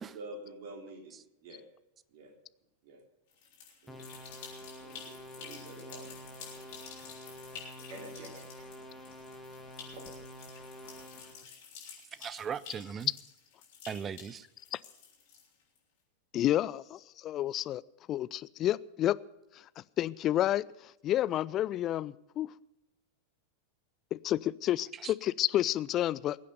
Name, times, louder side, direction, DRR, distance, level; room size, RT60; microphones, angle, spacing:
voice 1, 0.1-1.1 1.4-1.6 2.1-2.3 2.8-3.0 3.8-4.1 4.8-7.4 7.9-8.7 10.0-10.1, right 2 dB, 50° right, 3.3 m, -49 dB
sound 1, 3.3-15.8, left 6 dB, 50° left, 5.2 m, -50 dB
sound 2, 3.9-11.4, equal, ahead, 2.4 m, -48 dB
voice 2, 12.1-13.1 13.9-14.5 24.9-25.1, right 7 dB, 25° right, 0.6 m, -39 dB
voice 3, 16.3-17.8 18.1-19.2 20.0-20.6 21.0-22.5 24.1-26.4, left 13 dB, 30° left, 0.4 m, -30 dB
21.0 x 8.5 x 6.8 m
figure-of-eight pair, 90°, 0 cm